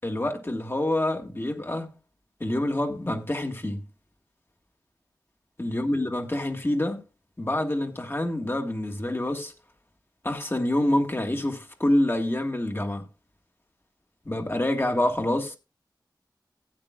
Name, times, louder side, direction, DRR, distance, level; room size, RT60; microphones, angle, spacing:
voice 1, 0.0-1.9 2.4-3.8 5.6-7.0 7.4-9.5 10.2-13.1 14.2-15.6, left 1 dB, 30° left, 1.8 m, -27 dB
15.5 x 8.8 x 2.4 m
wide cardioid pair, 50°, 8 cm